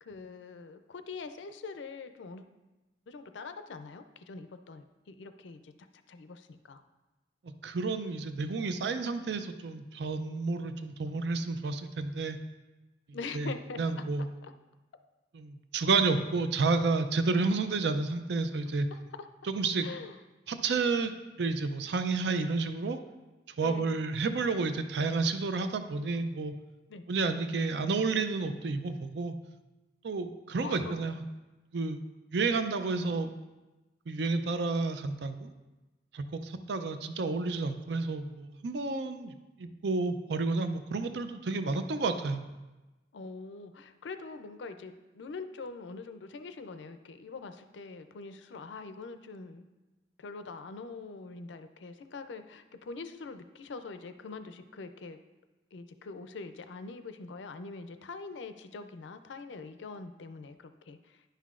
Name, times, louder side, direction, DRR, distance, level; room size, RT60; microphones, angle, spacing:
voice 1, 0.0-2.5 3.1-5.7 6.1-6.8 13.1-14.0 14.4-14.5 18.9-19.3 19.8-20.2 23.6-23.9 26.9-27.0 30.6-31.0 43.1-49.7 50.2-55.2 55.7-61.2, left 4 dB, 80° left, 10 dB, 0.4 m, -43 dB
voice 2, 7.6-12.4 13.3-13.5 13.8-14.3 15.3-18.9 19.5-19.9 20.5-21.1 21.4-23.0 23.6-26.5 27.1-29.4 30.0-31.2 31.7-32.0 32.3-33.3 34.1-35.5 36.1-42.4, right 3 dB, 70° right, 9 dB, 0.5 m, -30 dB
10.0 x 5.7 x 2.4 m, 1.1 s
head